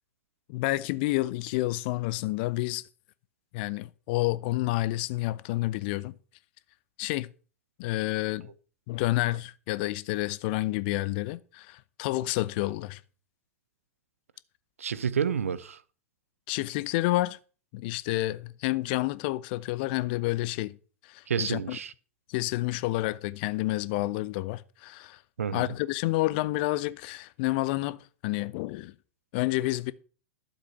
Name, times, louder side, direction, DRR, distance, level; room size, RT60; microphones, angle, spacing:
voice 1, 0.5-2.8 3.5-6.1 7.0-7.3 7.8-8.5 8.9-13.0 16.5-17.4 17.7-20.8 21.0-21.8 22.3-25.2 25.5-28.9 29.3-29.9, left 18 dB, 45° left, 0.6 m, -29 dB
voice 2, 14.8-15.8 21.3-21.9 25.4-25.7, right 7 dB, 70° right, 0.7 m, -29 dB
12.0 x 7.7 x 5.8 m
figure-of-eight pair, 95°, 8 cm